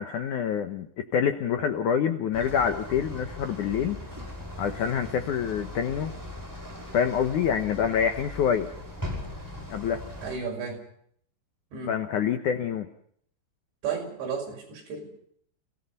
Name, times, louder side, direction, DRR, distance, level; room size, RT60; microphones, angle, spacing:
voice 1, 0.0-4.0 4.6-6.1 6.9-8.7 9.7-10.0 11.9-12.9, left 8 dB, 75° left, 8 dB, 1.8 m, -26 dB
sound 1, 2.3-10.4, left 1 dB, 5° right, 5.6 m, -39 dB
voice 2, 10.2-10.8 11.7-12.0 13.8-15.1, right 6 dB, 75° right, 2 dB, 7.8 m, -33 dB
29.5 x 18.0 x 5.5 m, 0.66 s
omnidirectional pair, 5.2 m